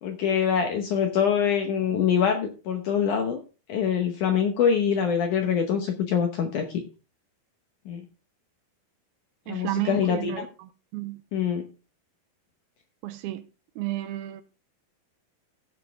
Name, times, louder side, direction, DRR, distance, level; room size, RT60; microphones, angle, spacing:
voice 1, 0.0-3.4 3.7-6.8 7.9-8.0 9.5-10.5 11.3-11.7, left 7 dB, 70° left, 1.9 m, -24 dB
voice 2, 9.5-11.2 13.0-13.5 13.8-14.4, right 15 dB, 80° right, 2.5 m, -32 dB
15.5 x 6.4 x 3.4 m
omnidirectional pair, 4.7 m